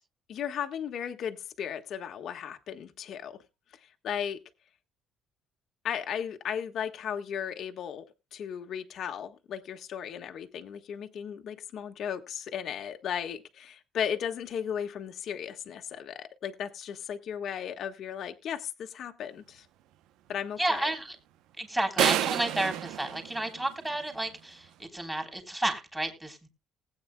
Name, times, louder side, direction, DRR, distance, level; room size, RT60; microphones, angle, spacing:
voice 1, 0.3-3.4 4.0-4.4 5.8-8.0 8.3-19.7 20.3-20.9, left 8 dB, 55° left, 6 dB, 1.4 m, -35 dB
voice 2, 20.6-21.1 21.6-26.5, right 1 dB, 10° right, 3 dB, 3.4 m, -31 dB
sound 1, 22.0-24.1, right 12 dB, 80° right, 0.7 m, -29 dB
19.5 x 8.8 x 2.2 m, 0.26 s
cardioid pair, 145°, 0 cm